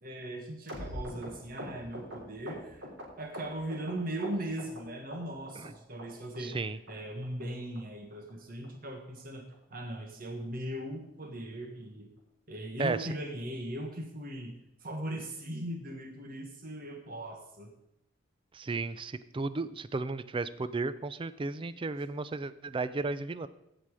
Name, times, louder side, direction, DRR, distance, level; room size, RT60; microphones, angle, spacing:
voice 1, 0.0-2.9 3.2-6.6 6.9-9.4 9.7-12.1 12.5-14.5 14.8-17.7, right 1 dB, 50° right, 3 dB, 1.6 m, -39 dB
sound 1, 0.7-3.9 4.2-4.8 5.1-5.7 6.0-6.1 6.3-6.6 6.9-7.0 7.2-7.4 7.7-7.8 8.1-8.3 8.6-8.7 9.0-9.2 9.5-9.6 9.9-10.1 10.4-10.5, equal, 75° right, 3.7 m, -43 dB
voice 2, 6.4-6.8 12.8-13.1 18.5-23.5, right 3 dB, 30° right, 15 dB, 0.4 m, -34 dB
15.5 x 5.9 x 4.9 m, 0.85 s
head